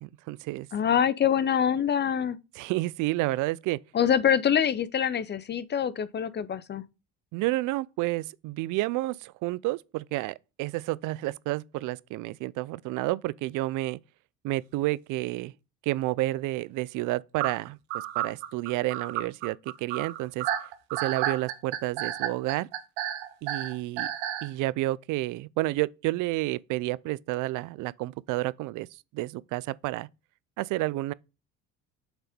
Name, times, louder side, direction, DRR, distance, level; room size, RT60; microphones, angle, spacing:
voice 1, 0.0-0.7 2.6-3.8 7.3-14.0 14.4-15.5 15.8-20.5 20.9-22.7 23.4-24.1 24.4-28.9 29.1-30.1 30.6-31.1, right 18 dB, 70° right, 0.5 m, -30 dB
voice 2, 0.7-2.4 3.9-6.8, left 8 dB, 35° left, 0.6 m, -25 dB
sound 1, 17.4-24.5, right 12 dB, 90° right, 1.1 m, -31 dB
6.1 x 4.1 x 5.0 m
supercardioid pair, 85°, 33 cm